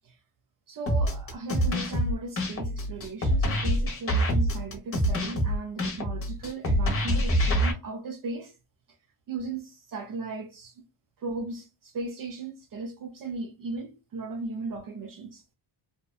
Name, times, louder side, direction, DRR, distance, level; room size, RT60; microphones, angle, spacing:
voice 1, 0.7-8.5 9.3-10.7 11.2-15.4, right 3 dB, 55° right, 0.5 m, -37 dB
sound 1, 0.9-7.7, equal, 35° left, 0.7 m, -26 dB
2.6 x 2.1 x 2.3 m
wide cardioid pair, 155°, 41 cm